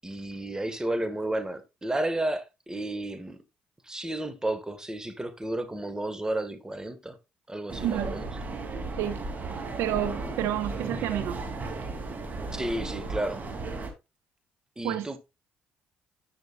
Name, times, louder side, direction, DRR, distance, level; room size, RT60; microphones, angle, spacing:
voice 1, 0.0-3.4 3.8-7.2 7.5-8.3 12.5-13.4 14.8-15.2, right 1 dB, 15° right, 1.5 m, -32 dB
sound 1, 7.7-13.9, right 3 dB, 40° right, 2.6 m, -35 dB
voice 2, 7.8-8.2 9.0-9.2 9.8-11.7 14.8-15.1, right 11 dB, 80° right, 0.9 m, -30 dB
11.0 x 6.2 x 2.3 m
supercardioid pair, 65°, 4 cm